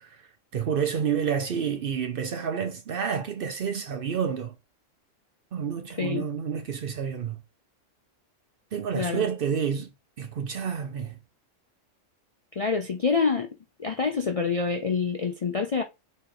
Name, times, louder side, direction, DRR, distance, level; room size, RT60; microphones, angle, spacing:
voice 1, 0.5-4.5 5.5-7.4 8.7-9.9 10.2-11.2, right 7 dB, 60° right, 0.7 m, -29 dB
voice 2, 9.0-9.3 12.6-13.5 13.8-15.8, left 5 dB, 50° left, 0.4 m, -26 dB
4.2 x 3.0 x 3.8 m
omnidirectional pair, 1.3 m